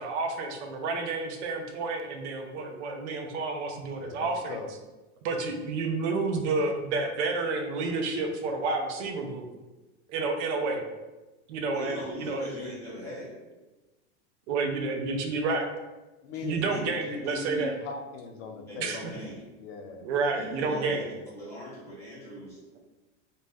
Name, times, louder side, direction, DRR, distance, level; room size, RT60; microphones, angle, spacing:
voice 1, 0.0-4.6 5.2-9.5 10.1-10.8 11.5-12.5 14.5-15.7 16.4-17.8 18.8-19.1 20.0-21.0 22.2-22.4 22.7-22.8, right 3 dB, 65° right, 4 dB, 0.6 m, -30 dB
voice 2, 3.9-4.7 16.2-19.0 19.6-20.1, left 3 dB, 75° left, 5 dB, 0.5 m, -39 dB
voice 3, 11.7-13.3 16.3-16.8 17.1-17.2 18.7-19.4 20.3-22.6, equal, 10° left, -9 dB, 0.4 m, -41 dB
2.6 x 2.2 x 3.3 m, 1.1 s
supercardioid pair, 170°, 37 cm